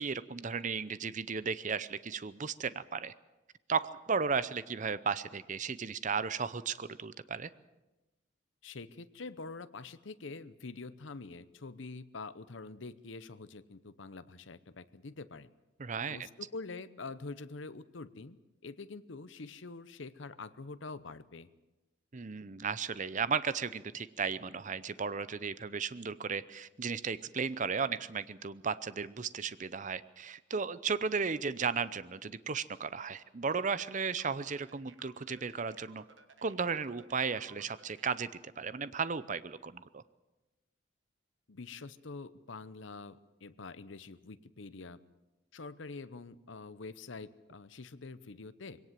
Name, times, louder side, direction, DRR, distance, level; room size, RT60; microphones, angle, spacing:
voice 1, 0.0-3.1 3.7-7.5 15.8-16.2 22.1-36.0 36.4-38.3 38.6-40.0, right 5 dB, 40° right, 16 dB, 0.7 m, -35 dB
voice 2, 8.6-15.5 16.1-18.4 18.6-21.5 41.5-45.0 45.5-48.8, left 3 dB, 70° left, 14 dB, 0.8 m, -45 dB
sound 1, 33.5-38.1, right 5 dB, 70° right, 1.5 m, -59 dB
21.5 x 17.5 x 7.6 m, 1.0 s
head